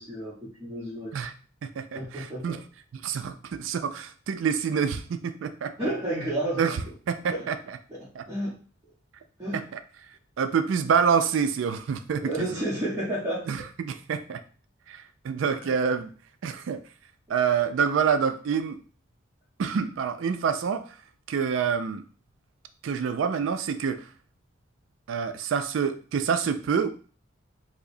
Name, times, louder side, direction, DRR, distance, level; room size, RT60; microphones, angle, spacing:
voice 1, 0.0-1.1 1.9-2.6 5.8-6.6 7.3-7.4 8.0-8.5 9.4-9.6 12.2-13.5 15.6-15.7, right 1 dB, 20° right, -9 dB, 0.9 m, -31 dB
voice 2, 1.6-2.6 2.9-5.7 6.6-7.8 8.1-8.2 9.5-9.6 10.4-12.6 13.5-14.4 14.9-16.1 16.4-16.8 17.3-18.8 19.6-20.9 21.3-22.0 22.8-24.1 25.1-26.9, right 6 dB, 85° right, 9 dB, 0.3 m, -27 dB
4.7 x 2.0 x 2.6 m, 0.41 s
head